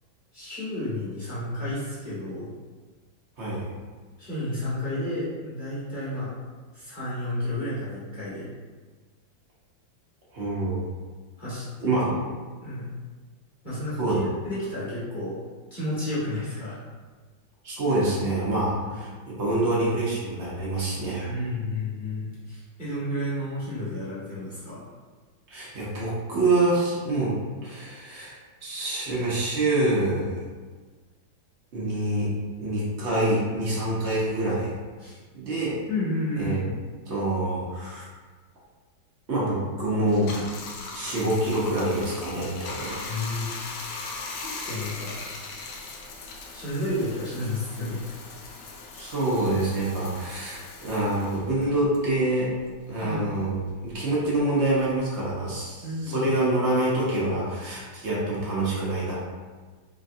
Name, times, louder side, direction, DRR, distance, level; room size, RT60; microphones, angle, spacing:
voice 1, 0.3-2.5 4.2-6.3 6.7-8.5 11.4-12.1 12.6-12.9 13.6-15.3 15.7-16.8 18.8-19.0 21.2-24.8 35.0-35.2 35.9-36.8 43.1-43.5 44.3-45.1 46.5-48.0 53.0-53.2 55.8-56.3, left 1 dB, 25° left, -11 dB, 1.2 m, -31 dB
voice 2, 10.3-10.8 11.8-12.1 14.0-14.2 17.6-21.3 25.5-27.3 27.6-28.4 28.6-30.4 31.7-32.3 32.6-34.7 35.3-35.8 36.4-36.6 37.1-38.0 39.3-40.4 40.9-43.0 48.9-52.5 52.9-59.3, right 2 dB, 50° right, -6 dB, 0.9 m, -26 dB
Bathtub (filling or washing), 40.1-52.9 53.2-55.0, left 3 dB, 75° left, 1.0 m, -39 dB
3.7 x 3.2 x 2.6 m, 1.4 s
omnidirectional pair, 2.2 m